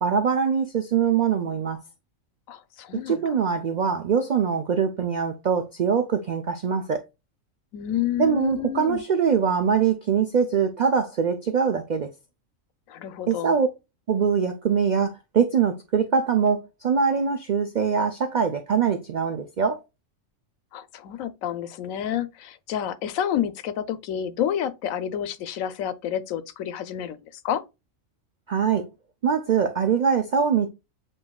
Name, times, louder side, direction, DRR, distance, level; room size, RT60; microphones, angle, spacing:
voice 1, 0.0-1.8 3.1-7.0 8.2-12.1 13.3-13.7 14.1-19.8 28.5-28.9 29.2-30.7, right 6 dB, 80° right, 0.4 m, -23 dB
voice 2, 2.5-3.3 7.7-9.0 12.9-13.5 20.7-27.6, left 10 dB, 85° left, 1.0 m, -29 dB
7.5 x 2.6 x 2.2 m
omnidirectional pair, 1.4 m